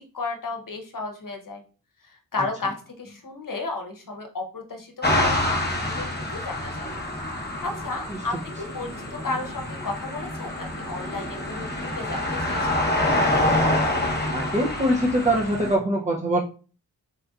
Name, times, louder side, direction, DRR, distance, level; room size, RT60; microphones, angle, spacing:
voice 1, 0.1-1.6 2.3-6.9 7.4-12.7, left 3 dB, 55° left, 3 dB, 0.8 m, -33 dB
sound 1, 5.0-15.8, left 1 dB, 25° left, 1.0 m, -26 dB
voice 2, 14.3-16.4, right 1 dB, 20° right, -3 dB, 0.6 m, -23 dB
4.4 x 2.5 x 2.4 m, 0.37 s
cardioid pair, 45°, 40 cm